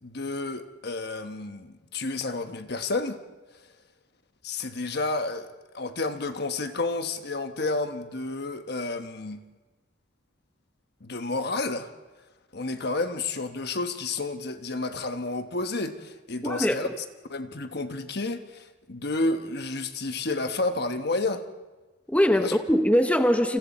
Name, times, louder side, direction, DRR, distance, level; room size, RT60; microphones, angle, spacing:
voice 1, 0.0-3.2 4.4-5.5 5.7-9.4 11.0-11.9 12.5-17.0 17.3-21.5 22.4-22.5, left 3 dB, 55° left, 1.2 m, -30 dB
voice 2, 16.4-16.9 22.1-23.6, equal, 5° left, 1.0 m, -22 dB
28.5 x 27.5 x 4.3 m
head